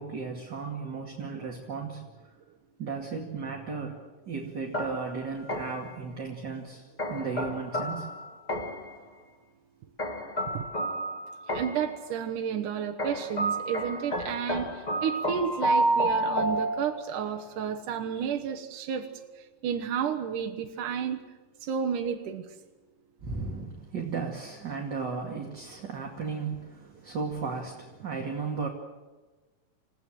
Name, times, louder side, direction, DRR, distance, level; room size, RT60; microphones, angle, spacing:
voice 1, 0.0-2.0 2.8-8.1 23.2-28.7, right 4 dB, 35° right, 0 dB, 2.6 m, -35 dB
sound 1, 4.7-5.9 7.0-9.0 10.0-12.0 13.0-17.3, right 1 dB, 20° left, 1.0 m, -30 dB
voice 2, 11.5-19.1 19.3-21.2 21.6-22.5, right 8 dB, 70° right, 4 dB, 2.5 m, -31 dB
28.5 x 17.0 x 7.7 m, 1.2 s
omnidirectional pair, 4.0 m